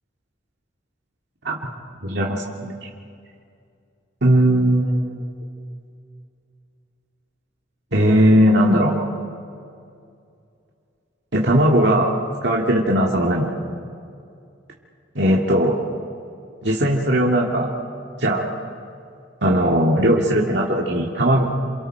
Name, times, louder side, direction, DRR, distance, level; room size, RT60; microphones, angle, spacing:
voice 1, 2.0-2.7 4.2-5.3 7.9-8.9 11.3-12.2 12.4-13.5 15.2-15.8 16.6-17.7 18.2-18.5 19.4-21.4, right 1 dB, 65° right, -2 dB, 2.2 m, -18 dB
28.5 x 27.5 x 4.6 m, 2.4 s
head